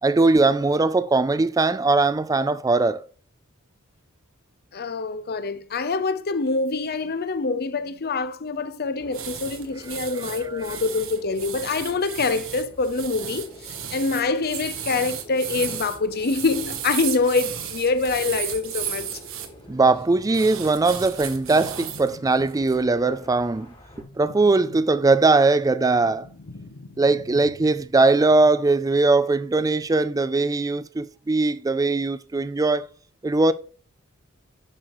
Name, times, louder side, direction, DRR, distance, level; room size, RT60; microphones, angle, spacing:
voice 1, 0.0-3.0 10.4-10.7 19.7-23.7 24.2-26.3 27.0-32.9 33.2-33.5, right 3 dB, 15° right, 0.3 m, -20 dB
voice 2, 4.7-19.1, left 3 dB, 45° left, 0.7 m, -25 dB
sound 1, 9.0-24.0, equal, 25° left, 1.7 m, -47 dB
sound 2, 9.1-19.5 20.3-22.1 22.5-22.8, right 9 dB, 65° right, 1.1 m, -34 dB
sound 3, 21.3-22.9 23.9-25.4 25.7-28.1, left 2 dB, 85° left, 0.9 m, -45 dB
9.9 x 6.4 x 3.1 m
head